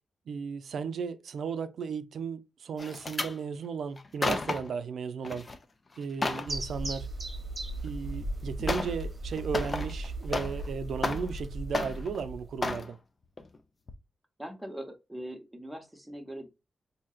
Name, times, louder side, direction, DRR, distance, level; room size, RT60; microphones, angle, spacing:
voice 1, 0.3-5.5 6.0-7.1 7.8-13.0, right 6 dB, 75° right, 0.5 m, -35 dB
sound 1, 2.8-3.3 4.0-4.8 5.2-5.6 5.9-6.5 7.9-8.0 8.7-9.0 9.3-10.7 11.0-11.5 11.7-12.2 12.6-12.9 13.4-13.6 13.9-14.0, left 3 dB, 25° left, 0.5 m, -32 dB
sound 2, 6.5-12.8, right 2 dB, 25° right, 1.0 m, -37 dB
voice 2, 14.4-16.5, right 1 dB, 5° right, 0.8 m, -41 dB
4.4 x 2.8 x 2.3 m
wide cardioid pair, 175°, 0 cm